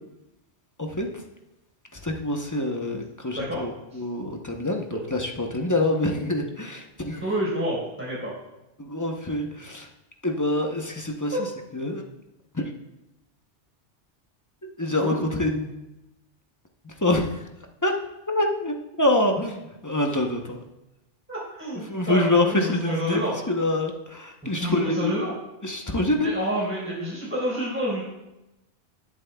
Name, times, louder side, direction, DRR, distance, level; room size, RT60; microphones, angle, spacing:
voice 1, 1.9-7.2 8.8-9.9 10.2-11.3 11.7-12.0 12.5-12.7 14.8-15.9 16.8-17.4 17.8-17.9 18.3-20.6 21.9-23.2 23.5-25.1 25.6-26.3, left 1 dB, 20° left, 2 dB, 0.7 m, -26 dB
voice 2, 7.2-8.3 11.3-11.4 15.0-15.1 21.3-23.4 24.6-25.3 26.1-28.0, equal, 10° right, -7 dB, 4.2 m, -28 dB
19.5 x 7.4 x 2.3 m, 0.95 s
omnidirectional pair, 1.2 m